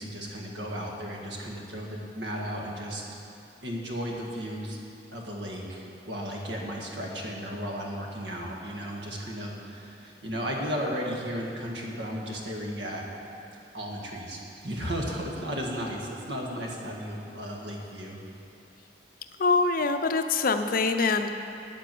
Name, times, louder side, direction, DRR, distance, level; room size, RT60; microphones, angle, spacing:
voice 1, 0.0-3.0 3.6-4.8 5.1-13.1 13.7-18.2, equal, 70° right, -1 dB, 1.7 m, -34 dB
voice 2, 19.4-21.4, left 4 dB, 55° left, 7 dB, 0.6 m, -24 dB
9.2 x 8.3 x 7.7 m, 2.8 s
head